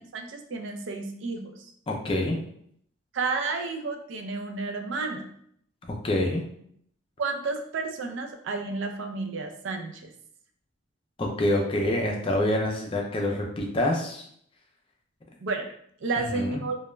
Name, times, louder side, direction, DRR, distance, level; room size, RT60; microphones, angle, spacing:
voice 1, 0.1-1.5 3.1-5.3 7.2-10.1 15.4-15.7 16.0-16.8, right 3 dB, 70° right, 4 dB, 0.4 m, -31 dB
voice 2, 1.9-2.4 6.0-6.4 11.2-14.2 16.2-16.6, left 1 dB, 25° left, 1 dB, 0.4 m, -26 dB
2.2 x 2.1 x 3.0 m, 0.68 s
head